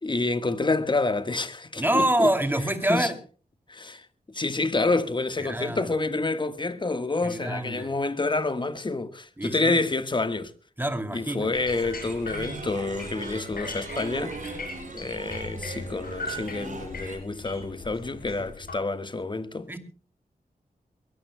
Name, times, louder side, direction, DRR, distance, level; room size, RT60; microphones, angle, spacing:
voice 1, 0.0-2.3 2.8-3.1 3.7-4.0 4.3-10.5 11.1-14.4 14.9-19.7, left 3 dB, 30° left, 1.5 m, -28 dB
voice 2, 1.8-3.1 5.4-5.9 7.2-7.9 9.4-9.7 10.8-11.5 19.7-19.8, right 1 dB, 15° right, 2.6 m, -26 dB
sound 1, 11.5-18.7, left 2 dB, 75° left, 7.1 m, -39 dB
sound 2, 11.7-17.2, right 3 dB, 55° right, 5.9 m, -39 dB
22.5 x 21.0 x 2.2 m
wide cardioid pair, 105°, 16 cm